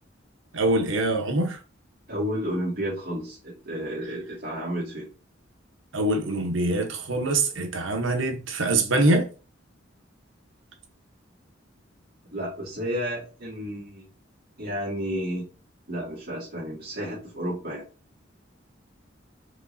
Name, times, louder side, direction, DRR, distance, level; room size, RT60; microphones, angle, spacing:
voice 1, 0.5-1.6 5.9-9.3, right 2 dB, 85° right, 1.0 m, -24 dB
voice 2, 2.1-5.1 12.3-14.1 14.6-15.5 15.9-17.8, equal, 55° right, 1.9 m, -31 dB
5.2 x 3.2 x 2.7 m
head